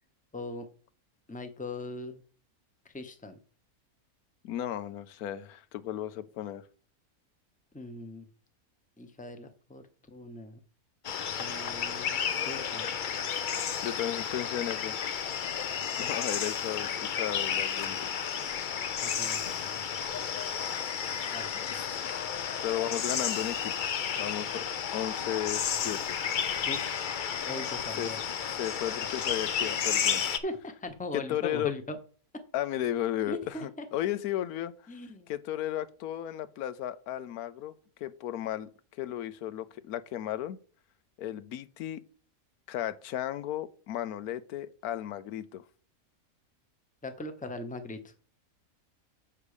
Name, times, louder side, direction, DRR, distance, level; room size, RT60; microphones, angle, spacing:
voice 1, 0.3-0.7 1.3-2.2 2.9-3.4 7.7-8.2 9.0-10.6 11.3-12.2 12.4-12.9 19.0-19.8 21.3-21.5 26.6-26.9 27.4-28.2 30.4-32.0 33.3-33.8 34.9-35.3 47.0-48.1, left 2 dB, 5° left, 0.7 m, -40 dB
voice 2, 4.4-6.6 13.8-14.9 16.0-18.1 21.7-22.1 22.6-23.7 24.2-24.6 24.9-26.1 28.0-28.1 28.6-30.2 31.1-31.7 32.5-34.9 35.3-37.7 38.0-40.6 41.2-42.0 42.7-45.6, left 12 dB, 90° left, 1.1 m, -34 dB
sound 1, 11.0-30.4, left 7 dB, 55° left, 0.5 m, -32 dB
7.2 x 6.7 x 4.9 m
omnidirectional pair, 1.5 m